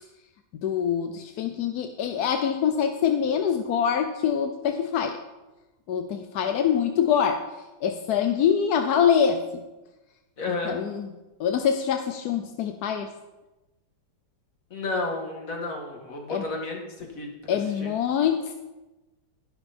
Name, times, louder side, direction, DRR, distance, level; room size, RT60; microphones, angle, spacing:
voice 1, 0.6-5.2 5.9-7.4 7.8-9.6 10.7-11.1 11.4-13.1 16.3-16.4 17.5-18.5, left 8 dB, 65° left, 7 dB, 1.0 m, -24 dB
voice 2, 10.4-10.8 14.7-17.9, left 2 dB, 40° left, 0 dB, 2.4 m, -32 dB
12.5 x 11.0 x 4.3 m, 1.1 s
omnidirectional pair, 2.2 m